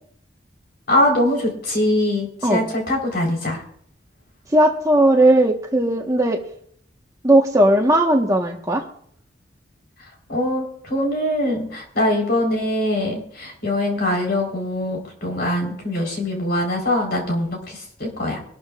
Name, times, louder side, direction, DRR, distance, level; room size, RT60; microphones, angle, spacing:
voice 1, 0.9-3.6 10.3-18.4, left 1 dB, 55° left, 1 dB, 4.2 m, -22 dB
voice 2, 4.5-6.4 7.2-8.8, right 1 dB, 15° right, 2 dB, 1.3 m, -17 dB
23.5 x 12.5 x 2.5 m, 0.63 s
head